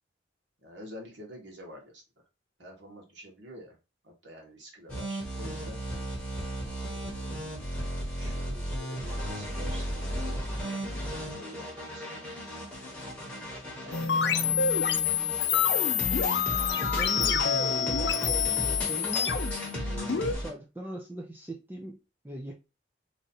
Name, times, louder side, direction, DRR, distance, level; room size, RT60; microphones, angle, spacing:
voice 1, 0.6-2.0 2.6-3.8 4.0-5.8 6.7-7.3 8.2-10.2 10.8-12.3 12.9-13.0 13.8-15.2, equal, 75° right, 1.5 m, -48 dB
sound 1, 4.9-20.5, equal, 5° left, 1.2 m, -35 dB
sound 2, 13.9-20.3, left 7 dB, 60° left, 0.5 m, -27 dB
voice 2, 16.8-19.5 19.8-22.0 22.2-22.5, right 1 dB, 10° right, 0.5 m, -40 dB
3.1 x 2.6 x 4.1 m
head